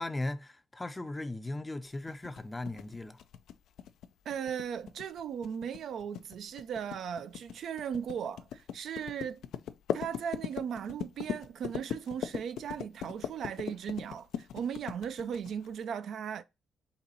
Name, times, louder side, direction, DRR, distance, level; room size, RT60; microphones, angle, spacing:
voice 1, 0.0-3.2, left 2 dB, 15° left, 0.5 m, -37 dB
sound 1, 2.1-15.8, left 9 dB, 80° left, 0.4 m, -39 dB
voice 2, 4.3-9.5 9.9-16.4, right 8 dB, 65° right, 0.4 m, -37 dB
4.1 x 2.6 x 4.2 m
cardioid pair, 90°, 0 cm